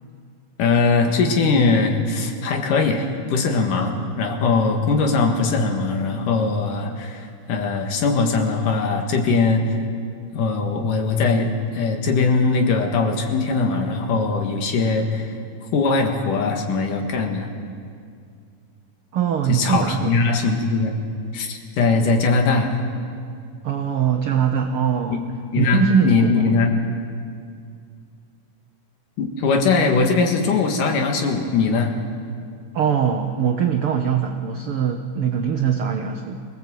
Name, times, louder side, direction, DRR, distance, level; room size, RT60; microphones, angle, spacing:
voice 1, 0.6-9.8 10.3-15.3 15.7-17.5 19.5-20.9 21.3-22.8 25.1-25.2 25.5-26.8 29.2-31.9, left 4 dB, 70° left, 3 dB, 3.3 m, -20 dB
voice 2, 19.1-20.2 23.6-25.2 25.6-26.5 32.7-36.5, right 7 dB, 80° right, 5 dB, 1.2 m, -22 dB
25.0 x 17.5 x 7.8 m, 2.3 s
omnidirectional pair, 3.9 m